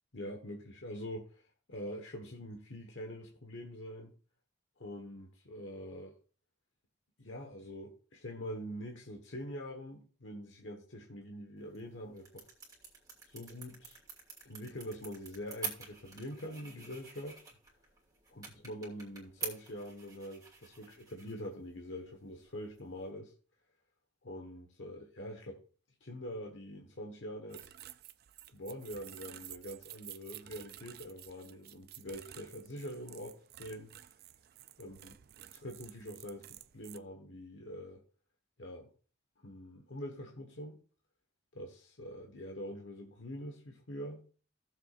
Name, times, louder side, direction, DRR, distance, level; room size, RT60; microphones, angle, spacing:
voice 1, 0.1-4.1 4.8-6.1 7.2-12.5 13.2-14.0 14.4-17.4 18.3-23.3 24.2-25.6 26.0-27.7 28.5-33.9 34.8-35.1 35.5-38.0 38.6-38.9 39.4-40.8 41.5-44.2, equal, 85° left, 1.3 m, -44 dB
sound 1, 11.6-23.1, right 5 dB, 20° right, 2.6 m, -48 dB
sound 2, 27.5-37.0, right 13 dB, 55° right, 0.4 m, -52 dB
16.0 x 7.3 x 2.5 m
head